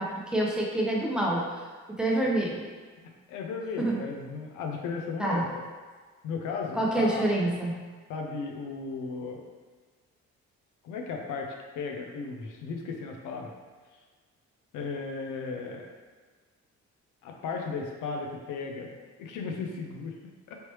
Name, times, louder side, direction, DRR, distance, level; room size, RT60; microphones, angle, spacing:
voice 1, 0.0-1.4 2.0-2.6 3.8-4.0 5.2-5.4 6.7-7.8, right 1 dB, 5° right, -4 dB, 0.7 m, -27 dB
voice 2, 3.0-5.5 6.2-7.3 8.1-9.4 10.8-13.5 14.7-15.9 17.2-20.1 20.5-20.6, left 4 dB, 90° left, 2 dB, 0.5 m, -35 dB
3.1 x 2.9 x 3.0 m, 1.5 s
cardioid pair, 90°, 30 cm